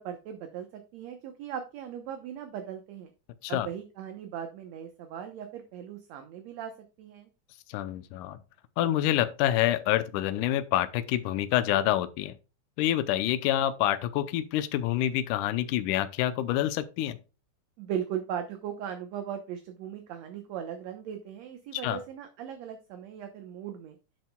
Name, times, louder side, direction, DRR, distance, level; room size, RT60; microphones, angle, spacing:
voice 1, 0.0-3.1 3.5-6.7 7.0-7.3 17.8-24.0, right 9 dB, 65° right, 2.0 m, -38 dB
voice 2, 7.7-8.4 8.8-12.3 12.8-17.2 21.7-22.0, left 12 dB, 85° left, 2.2 m, -27 dB
10.5 x 7.6 x 2.3 m
omnidirectional pair, 3.6 m